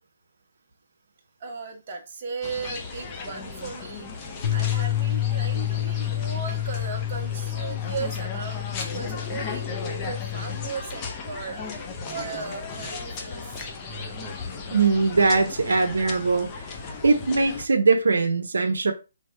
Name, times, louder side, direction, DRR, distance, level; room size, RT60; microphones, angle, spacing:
voice 1, 1.4-13.6 17.1-17.4, right 5 dB, 40° right, 1.2 m, -37 dB
sound 1, 2.4-17.7, left 4 dB, 20° left, 0.7 m, -36 dB
sound 2, 4.4-10.7, left 13 dB, 45° left, 1.2 m, -29 dB
voice 2, 14.7-16.6 17.0-18.9, right 4 dB, 85° right, 0.7 m, -21 dB
3.4 x 3.3 x 4.3 m
hypercardioid pair, 160°, 0 cm